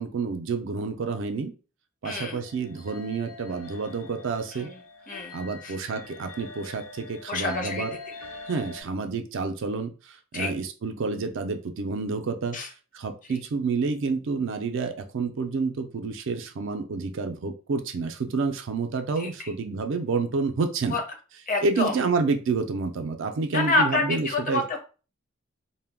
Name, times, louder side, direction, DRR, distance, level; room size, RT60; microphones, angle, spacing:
voice 1, 0.0-1.5 2.0-4.7 5.3-8.0 8.5-12.6 12.9-21.0 21.6-24.6, right 4 dB, 65° right, 6 dB, 0.4 m, -29 dB
voice 2, 2.0-2.4 4.6-4.7 5.1-5.3 5.6-5.7 7.3-7.9 10.3-10.5 12.5-12.7 19.2-19.3 20.9-21.0 21.5-21.9 23.5-24.8, left 2 dB, 40° left, 3 dB, 0.6 m, -27 dB
sound 1, 2.4-8.8, left 3 dB, 85° left, 0.8 m, -44 dB
2.2 x 2.1 x 3.4 m, 0.34 s
head